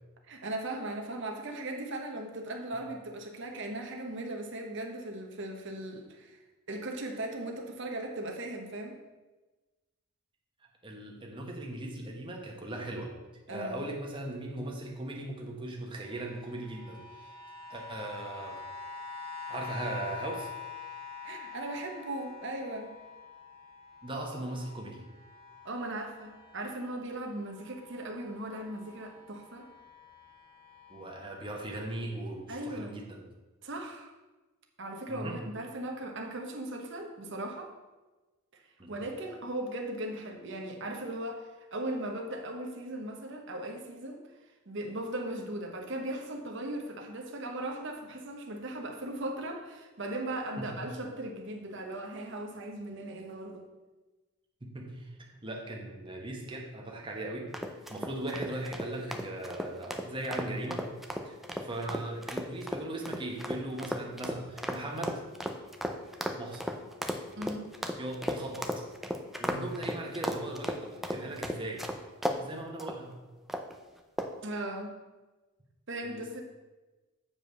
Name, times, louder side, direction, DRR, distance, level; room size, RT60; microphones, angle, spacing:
voice 1, 0.2-6.4 6.7-9.0 13.5-13.8 21.2-22.9 25.6-29.7 32.5-33.0 33.6-34.1 34.8-37.7 38.9-44.2 44.7-53.7 67.4-67.7 74.4-74.9 75.9-76.4, right 1 dB, 55° right, 3 dB, 1.1 m, -38 dB
voice 2, 10.8-13.1 13.5-17.3 17.7-18.6 19.5-20.5 24.0-25.0 30.9-33.2 35.1-35.4 38.8-38.9 50.6-50.8 54.6-57.5 57.9-60.8 61.2-65.2 66.4-66.7 68.0-68.8 69.4-71.8 72.4-73.1 76.0-76.4, right 1 dB, 25° right, -1 dB, 1.2 m, -38 dB
sound 1, 16.0-27.0 27.3-31.9 32.6-32.7, left 5 dB, 45° left, 2.0 m, -46 dB
sound 2, 57.5-72.4 72.8-73.0 73.5-73.8 74.2-74.5, equal, ahead, 0.5 m, -35 dB
7.2 x 4.9 x 6.6 m, 1.2 s
head